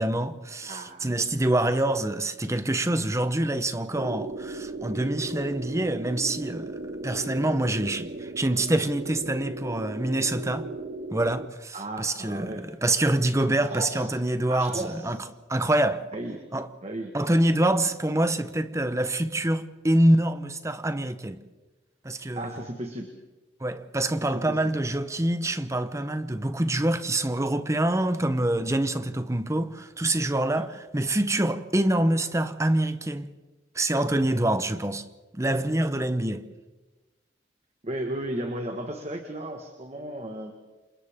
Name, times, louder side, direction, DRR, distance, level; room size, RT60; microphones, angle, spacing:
voice 1, 0.0-10.7 11.1-16.1 16.5-16.7 17.1-21.4 22.0-22.6 23.6-33.3 33.7-35.0 35.3-36.4, right 1 dB, 15° right, 0.9 m, -26 dB
voice 2, 0.6-1.2 11.7-12.6 13.6-14.1 14.5-15.2 16.1-16.4 16.8-17.1 22.3-23.1 24.5-24.6 30.5-30.7 37.8-40.5, right 1 dB, 35° right, 1.6 m, -34 dB
sound 1, 4.0-11.5, right 2 dB, 55° right, 0.7 m, -37 dB
29.0 x 27.5 x 3.7 m
head